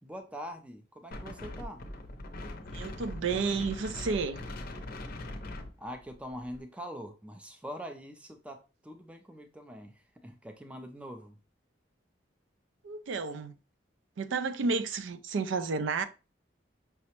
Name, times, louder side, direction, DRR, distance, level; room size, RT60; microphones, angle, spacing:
voice 1, 0.0-1.8 5.8-11.4, equal, 5° right, 0.4 m, -43 dB
Wind, 1.1-6.6, left 1 dB, 50° left, 0.5 m, -41 dB
voice 2, 2.7-4.4 12.8-13.5 14.2-16.0, right 4 dB, 85° right, 0.4 m, -31 dB
5.5 x 2.1 x 2.8 m
head